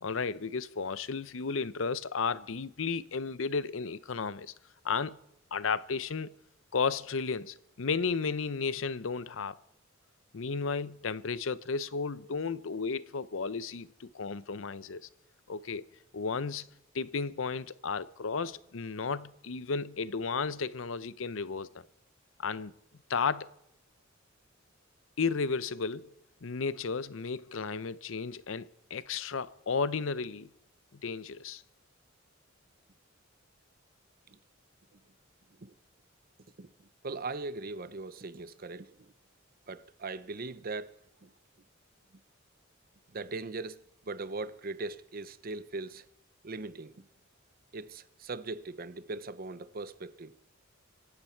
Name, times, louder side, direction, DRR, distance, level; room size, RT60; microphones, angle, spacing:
voice 1, 0.0-4.5 4.8-5.2 5.5-6.3 6.7-9.6 10.3-15.1 15.5-15.9 16.1-16.7 16.9-21.9 22.4-22.7 23.1-23.5 25.2-26.1 26.4-30.5 30.9-31.6, left 5 dB, 70° left, 0.7 m, -33 dB
voice 2, 36.6-39.1 39.7-41.3 43.1-46.0 46.4-47.0 47.7-50.3, right 3 dB, 45° right, 0.7 m, -40 dB
25.5 x 12.0 x 4.5 m
head